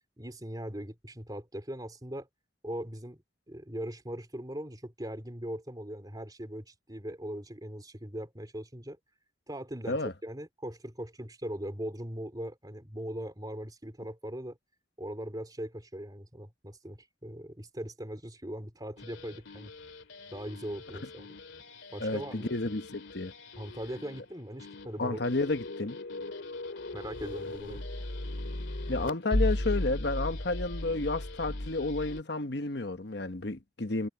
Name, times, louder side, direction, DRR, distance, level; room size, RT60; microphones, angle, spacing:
voice 1, 0.2-2.3 2.6-3.2 3.5-9.0 9.5-14.6 15.0-19.7 20.3-21.4 21.9-22.5 23.6-25.2 26.9-27.8, equal, 20° right, 3.3 m, -40 dB
sound 1, 19.0-32.2, left 1 dB, 80° left, 2.4 m, -37 dB
voice 2, 22.0-23.3 25.0-26.0 28.9-34.1, left 2 dB, 60° left, 1.2 m, -31 dB
head